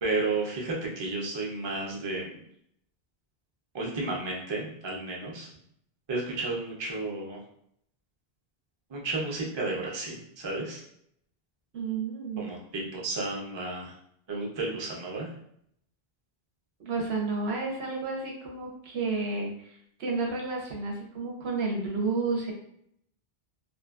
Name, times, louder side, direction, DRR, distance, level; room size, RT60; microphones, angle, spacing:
voice 1, 0.0-2.4 3.7-5.5 6.1-7.4 8.9-10.8 12.4-13.9 14.3-15.3, right 2 dB, 35° right, -3 dB, 0.5 m, -32 dB
voice 2, 11.7-12.5 16.8-22.5, right 3 dB, 90° right, 0 dB, 1.0 m, -31 dB
2.6 x 2.4 x 2.3 m, 0.70 s
omnidirectional pair, 1.0 m